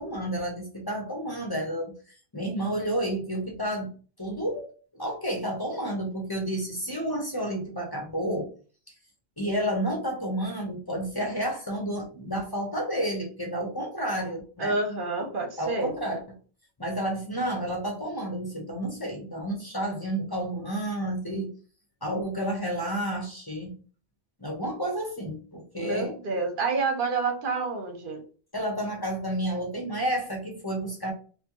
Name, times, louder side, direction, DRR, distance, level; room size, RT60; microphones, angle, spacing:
voice 1, 0.0-1.9 2.3-3.9 4.2-4.7 5.0-8.5 9.4-14.7 15.6-16.2 16.8-21.5 22.0-23.7 24.4-26.1 28.5-31.1, right 1 dB, 25° left, -1 dB, 0.9 m, -30 dB
voice 2, 14.6-15.9 25.8-28.2, right 3 dB, 60° right, 4 dB, 0.8 m, -28 dB
4.2 x 2.1 x 2.9 m, 0.39 s
omnidirectional pair, 1.0 m